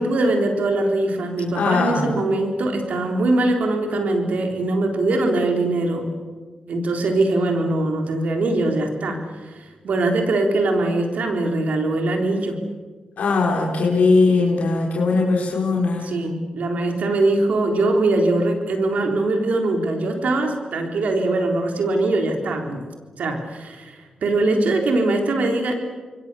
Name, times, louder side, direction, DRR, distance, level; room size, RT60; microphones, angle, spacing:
voice 1, 0.0-6.2 6.7-12.6 16.0-22.9 23.2-25.7, right 2 dB, 75° right, 4 dB, 3.8 m, -22 dB
voice 2, 1.5-2.1 13.2-16.1, left 3 dB, 80° left, -2 dB, 4.4 m, -19 dB
28.0 x 22.5 x 6.9 m, 1.4 s
supercardioid pair, 40°, 2 cm